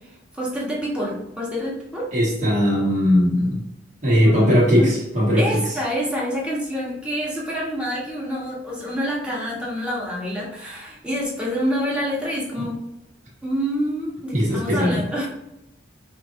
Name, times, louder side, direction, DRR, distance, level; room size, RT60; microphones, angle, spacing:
voice 1, 0.4-2.1 4.2-4.9 5.4-12.8 13.4-15.3, equal, 5° right, -5 dB, 1.3 m, -27 dB
voice 2, 2.1-3.6 4.0-5.4 12.6-12.7 14.3-15.0, equal, 40° right, -7 dB, 1.4 m, -19 dB
5.1 x 3.0 x 2.7 m, 0.89 s
head